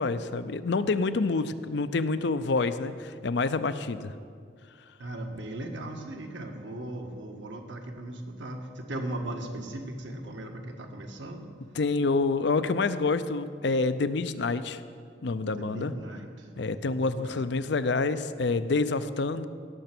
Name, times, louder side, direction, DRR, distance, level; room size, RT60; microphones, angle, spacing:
voice 1, 0.0-4.1 11.7-14.8 15.2-15.9 16.6-19.5, left 3 dB, 65° left, 13 dB, 0.5 m, -27 dB
voice 2, 5.0-11.5 15.5-17.5, right 1 dB, 70° right, 3 dB, 1.3 m, -38 dB
17.5 x 6.6 x 6.0 m, 2.2 s
head